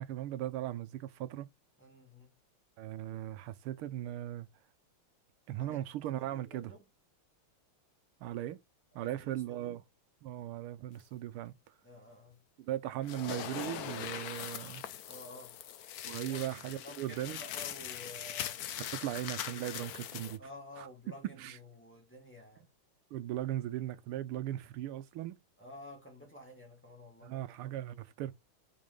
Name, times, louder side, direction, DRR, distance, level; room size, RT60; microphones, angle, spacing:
voice 1, 0.0-1.5 2.8-4.5 5.5-6.7 8.2-8.6 8.9-9.8 10.2-11.5 12.6-14.8 16.0-17.4 18.9-20.4 20.8-20.9 21.4-21.6 23.1-25.4 27.2-28.3, right 13 dB, 90° right, 1.6 m, -38 dB
voice 2, 1.8-2.4 5.5-5.8 6.2-6.8 9.0-9.8 11.8-12.4 15.1-15.6 16.1-18.7 19.0-19.2 20.4-22.7 25.6-27.4, left 1 dB, 5° left, 2.3 m, -52 dB
sound 1, 13.0-20.4, left 10 dB, 70° left, 0.9 m, -41 dB
5.3 x 4.9 x 5.3 m
omnidirectional pair, 2.3 m